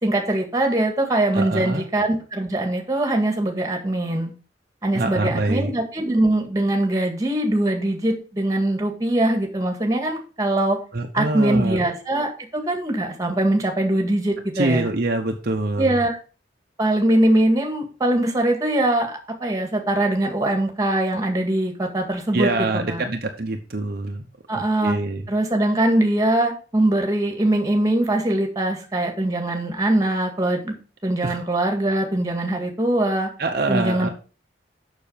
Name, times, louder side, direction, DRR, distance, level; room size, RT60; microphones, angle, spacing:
voice 1, 0.0-4.3 4.8-10.8 11.1-14.9 15.8-16.2 16.8-22.5 22.9-23.0 24.5-25.0 25.3-30.7 31.0-33.3 33.7-34.1, right 1 dB, 20° right, 3 dB, 1.9 m, -22 dB
voice 2, 1.3-1.9 4.9-5.7 10.9-11.8 14.5-16.0 22.3-24.2 24.5-25.2 31.2-31.4 33.4-34.1, right 2 dB, 55° right, 3 dB, 0.9 m, -24 dB
7.1 x 6.4 x 5.0 m, 0.37 s
head